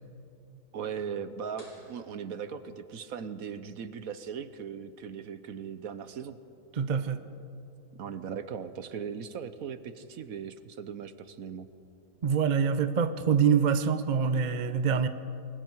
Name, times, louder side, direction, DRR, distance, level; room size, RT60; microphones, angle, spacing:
voice 1, 0.7-6.4 8.0-11.7, right 7 dB, 60° right, 12 dB, 1.1 m, -38 dB
sound 1, 1.6-3.2, left 1 dB, 75° left, 5.2 m, -57 dB
voice 2, 6.8-7.2 12.2-15.1, right 6 dB, 45° right, 10 dB, 0.6 m, -25 dB
29.0 x 21.5 x 4.7 m, 2.7 s
omnidirectional pair, 1.9 m